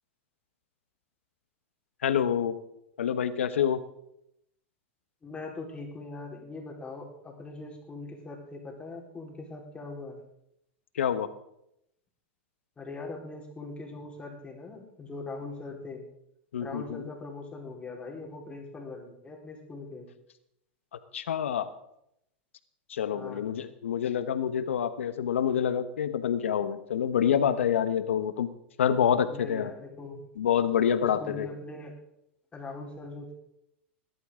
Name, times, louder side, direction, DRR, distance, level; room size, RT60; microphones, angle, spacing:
voice 1, 2.0-2.6 3.0-3.8 10.9-11.3 16.5-17.0 21.1-21.7 22.9-28.5 28.8-29.7 30.4-31.5, left 8 dB, 85° left, 11 dB, 1.2 m, -27 dB
voice 2, 5.2-10.2 12.8-16.0 16.6-20.1 23.1-23.5 29.3-30.2 31.0-31.9 32.5-33.3, left 3 dB, 15° left, -1 dB, 4.2 m, -41 dB
19.5 x 12.5 x 3.8 m, 0.79 s
hypercardioid pair, 115°, 7 cm